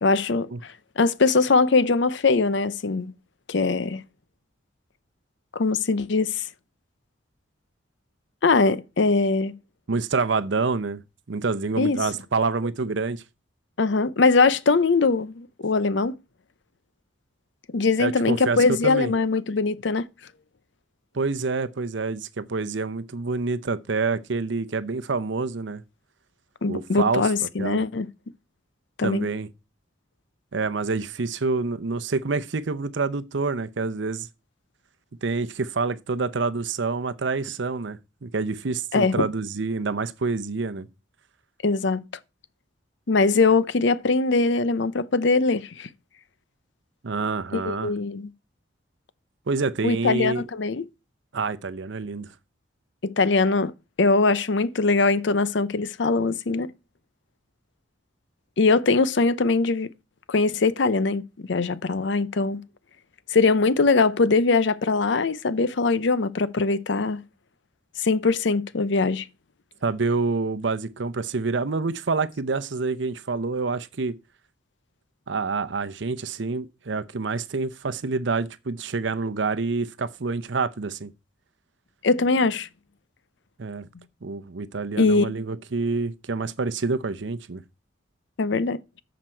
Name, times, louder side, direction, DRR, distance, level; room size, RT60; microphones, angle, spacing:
voice 1, 0.0-3.1 3.5-4.0 5.5-6.5 8.4-9.5 11.8-12.0 13.8-16.2 17.7-20.1 26.6-28.1 29.0-29.3 38.9-39.2 41.6-42.0 43.1-45.9 47.5-48.3 49.8-50.9 53.0-53.7 54.0-56.7 58.6-59.9 60.3-62.6 63.3-67.2 68.0-69.3 82.0-82.7 85.0-85.3 88.4-88.8, left 3 dB, 65° left, 0.6 m, -22 dB
voice 2, 9.9-11.0 11.3-13.2 18.0-19.1 21.1-25.8 26.7-27.3 27.6-27.8 29.0-29.5 30.5-34.3 35.2-40.9 47.0-47.9 49.5-50.4 51.3-52.3 69.8-74.2 75.3-81.1 83.6-83.9 84.2-87.6, right 4 dB, 70° right, 0.7 m, -27 dB
13.5 x 5.1 x 4.5 m
head